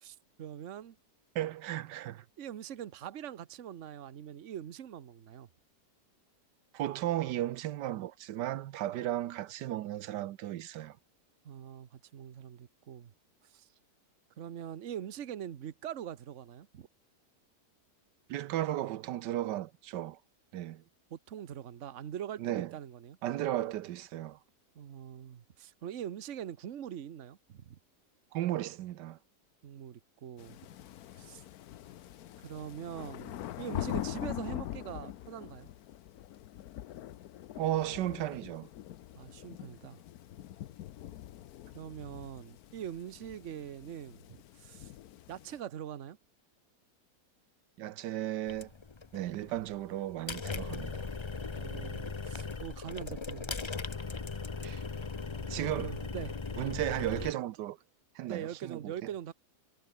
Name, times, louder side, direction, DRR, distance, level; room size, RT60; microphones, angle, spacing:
voice 1, 0.0-1.0 2.4-5.5 11.4-13.1 13.4-13.7 14.4-16.9 21.1-23.2 24.7-27.8 29.6-30.6 31.2-31.4 32.4-35.7 39.1-40.0 41.7-44.9 45.3-46.2 51.6-53.6 55.4-56.4 58.3-59.3, right 9 dB, 50° right, 1.2 m, -43 dB
voice 2, 1.3-2.2 6.7-11.0 18.3-20.2 20.5-20.8 22.4-22.7 23.2-24.4 28.3-29.2 37.6-38.7 47.8-48.7 49.1-51.1 54.6-54.8 55.5-56.0 56.6-57.8 58.1-58.9, right 13 dB, 85° right, 1.3 m, -35 dB
sound 1, 30.4-45.6, left 13 dB, 65° left, 1.1 m, -43 dB
sound 2, 48.5-57.3, left 4 dB, 40° left, 0.4 m, -39 dB
omnidirectional pair, 1.8 m